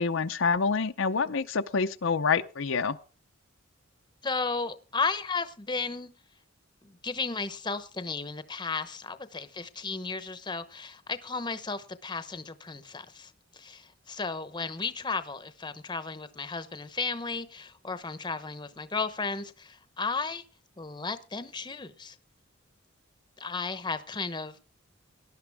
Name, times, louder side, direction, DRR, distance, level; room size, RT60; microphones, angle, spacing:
voice 1, 0.0-3.0, left 5 dB, 70° left, 0.7 m, -27 dB
voice 2, 4.2-6.1 6.8-20.4 20.8-22.2 23.4-24.6, left 4 dB, 20° left, 0.9 m, -34 dB
18.5 x 11.5 x 3.5 m
head